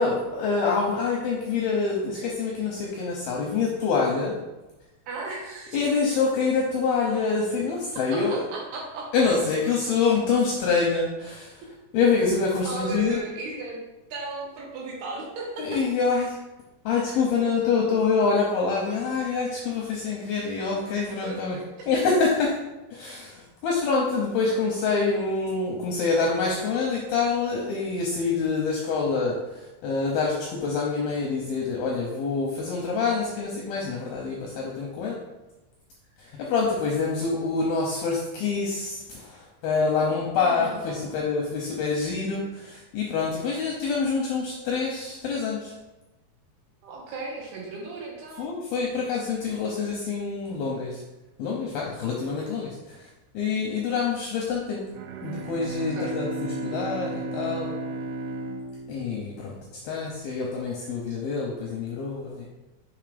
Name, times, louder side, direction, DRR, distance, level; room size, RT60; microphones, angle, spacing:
voice 1, 0.0-4.4 5.7-8.4 9.1-11.6 11.9-13.2 15.6-16.4 16.9-21.6 21.9-22.6 22.9-35.2 36.2-45.7 48.4-51.0 51.4-53.0 53.3-54.8 55.2-57.7 58.9-59.6 59.8-62.5, left 4 dB, 80° left, -2 dB, 2.2 m, -26 dB
voice 2, 5.1-5.8 8.1-9.1 10.7-10.8 12.7-13.8 14.1-15.8 21.2-21.9 39.9-41.1 46.8-48.6 55.9-56.2, right 3 dB, 70° right, -2 dB, 2.6 m, -36 dB
Bowed string instrument, 54.9-59.9, right 2 dB, 85° right, 2.2 m, -34 dB
7.1 x 3.7 x 5.0 m, 1.0 s
omnidirectional pair, 5.2 m